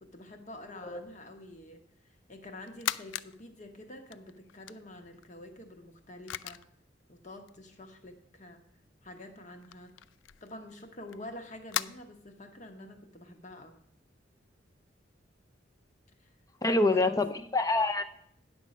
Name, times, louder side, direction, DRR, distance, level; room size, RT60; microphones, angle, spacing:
voice 1, 0.0-1.8 2.3-6.6 7.1-8.6 9.0-9.9 10.4-13.7 16.2-16.3 16.6-17.3, left 1 dB, 40° left, 6 dB, 1.2 m, -47 dB
sound 1, 2.6-3.4 3.7-5.3 6.0-6.1 6.3-6.8 7.5-7.6 8.9-9.0 9.2-9.3 9.6-11.8, left 12 dB, 70° left, 0.3 m, -37 dB
voice 2, 16.6-18.0, left 2 dB, 20° left, 9 dB, 0.6 m, -26 dB
9.4 x 6.4 x 5.3 m, 0.70 s
head